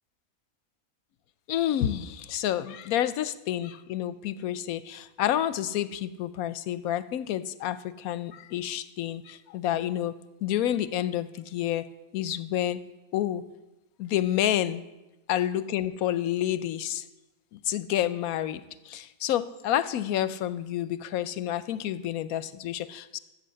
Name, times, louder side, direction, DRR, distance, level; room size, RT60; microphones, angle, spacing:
voice 1, 1.5-10.1 10.4-11.9 12.1-12.8 13.1-13.4 14.0-14.8 15.3-17.0 17.5-23.2, left 11 dB, 85° left, 15 dB, 1.1 m, -29 dB
13.5 x 7.3 x 7.7 m, 1.0 s
omnidirectional pair, 1.5 m